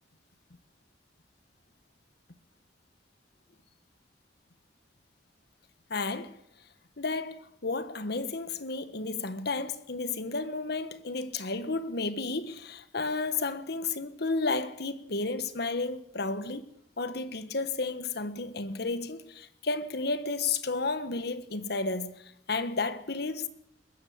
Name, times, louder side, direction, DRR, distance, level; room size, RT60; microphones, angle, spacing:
voice 1, 5.9-6.4 7.0-23.5, left 3 dB, 60° left, 1.4 m, -32 dB
21.5 x 14.5 x 8.6 m
head